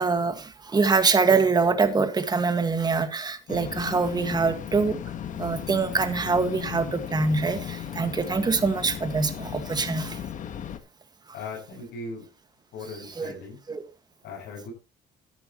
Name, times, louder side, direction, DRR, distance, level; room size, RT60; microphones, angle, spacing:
voice 1, 0.0-5.0 5.4-10.2 13.2-13.3 13.7-13.8, right 4 dB, 25° right, 1.8 m, -24 dB
sound 1, 3.5-10.8, left 9 dB, 50° left, 1.5 m, -36 dB
voice 2, 11.3-12.3 12.7-13.6 14.2-14.7, left 3 dB, 75° left, 6.9 m, -38 dB
13.0 x 10.5 x 3.1 m
cardioid pair, 110°, 17 cm